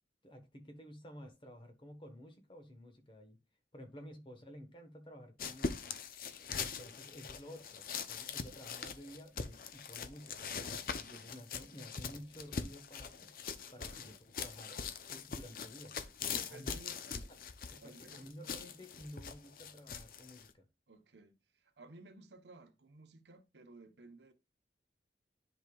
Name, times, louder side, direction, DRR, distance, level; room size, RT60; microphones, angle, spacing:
voice 1, 0.2-3.4 3.7-5.9 6.5-10.5 11.0-13.3 13.7-14.8 15.1-15.9 16.5-16.8 17.3-17.4 17.7-20.7, equal, 30° left, 1.2 m, -52 dB
sound 1, 5.4-20.5, left 5 dB, 50° left, 0.6 m, -42 dB
voice 2, 13.8-14.1 16.2-17.3 17.8-18.3 20.9-24.3, right 2 dB, 80° right, 1.0 m, -56 dB
10.0 x 5.1 x 2.3 m
head